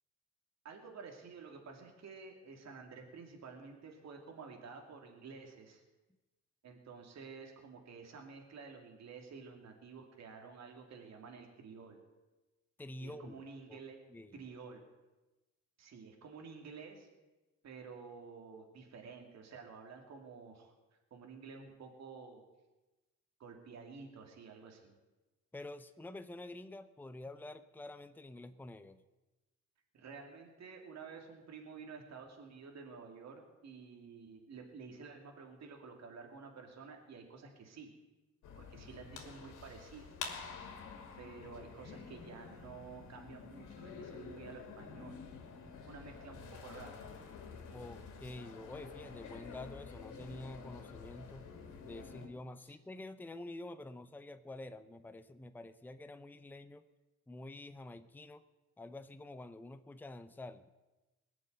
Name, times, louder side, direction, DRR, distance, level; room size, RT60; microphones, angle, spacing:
voice 1, 0.6-5.8 6.6-12.0 13.0-14.0 14.3-14.8 15.8-17.1 17.6-20.7 21.1-22.4 23.4-24.9 29.9-37.9 38.5-40.1 41.2-45.2 45.8-46.9, right 5 dB, 60° right, 3 dB, 2.7 m, -51 dB
voice 2, 12.8-13.4 13.7-13.8 14.1-14.4 25.5-29.0 47.7-51.5 51.8-56.9 57.3-58.4 58.8-60.7, left 2 dB, 5° left, 10 dB, 0.7 m, -48 dB
sound 1, 38.4-52.3, left 5 dB, 80° left, 2.6 m, -49 dB
20.0 x 6.8 x 9.3 m, 1.1 s
cardioid pair, 90°, 30 cm